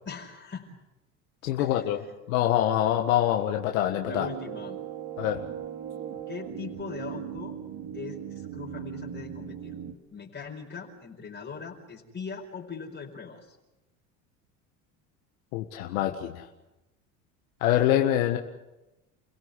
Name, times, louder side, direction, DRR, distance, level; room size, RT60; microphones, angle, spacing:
voice 1, 0.0-0.7 1.6-2.1 4.0-4.8 6.3-7.5 7.9-9.7 10.1-13.6 15.9-16.1, left 5 dB, 30° left, -2 dB, 4.9 m, -40 dB
voice 2, 1.4-2.0 2.3-4.3 5.2-5.4 15.5-16.5 17.6-18.4, left 12 dB, 80° left, 3 dB, 1.8 m, -25 dB
sound 1, 4.1-9.9, right 9 dB, 60° right, 2.7 m, -38 dB
30.0 x 17.0 x 8.3 m, 1.0 s
supercardioid pair, 90°, 41 cm